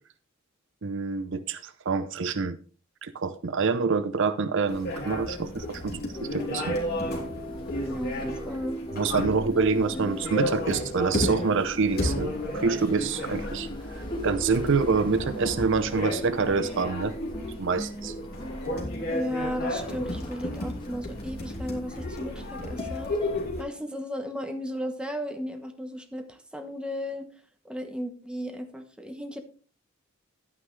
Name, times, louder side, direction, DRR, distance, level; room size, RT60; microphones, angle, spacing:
voice 1, 0.8-2.6 3.0-6.8 8.9-13.7 13.9-17.1 17.6-18.1, right 4 dB, 65° right, 13 dB, 0.6 m, -26 dB
sound 1, 4.7-23.6, left 1 dB, 50° left, 3.1 m, -33 dB
Paris Christmas Street Ambience (harpist people cars), 6.1-23.4, equal, 25° left, 1.6 m, -39 dB
voice 2, 7.8-8.8 19.1-23.1 23.6-27.3 27.6-29.4, equal, 5° right, 5 dB, 1.2 m, -35 dB
11.0 x 9.4 x 3.3 m, 0.40 s
head